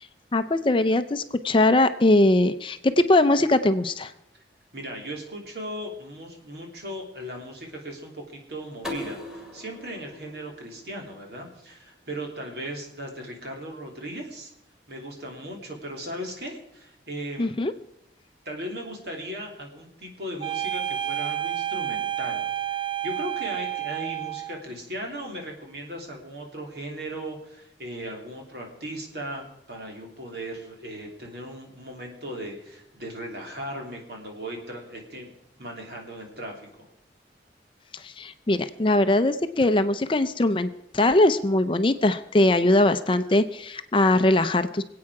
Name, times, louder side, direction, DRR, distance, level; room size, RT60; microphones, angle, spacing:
voice 1, 0.3-4.1 17.4-17.7 38.0-40.7 40.9-44.8, left 2 dB, 30° left, 11 dB, 0.5 m, -21 dB
voice 2, 4.7-14.5 14.9-17.6 18.4-35.3 35.6-36.9, equal, 60° right, 1 dB, 3.0 m, -37 dB
sound 1, 8.8-11.7, left 2 dB, 5° right, 2.3 m, -40 dB
sound 2, 20.4-24.6, right 12 dB, 30° right, 0.7 m, -30 dB
25.0 x 8.6 x 4.8 m, 0.80 s
head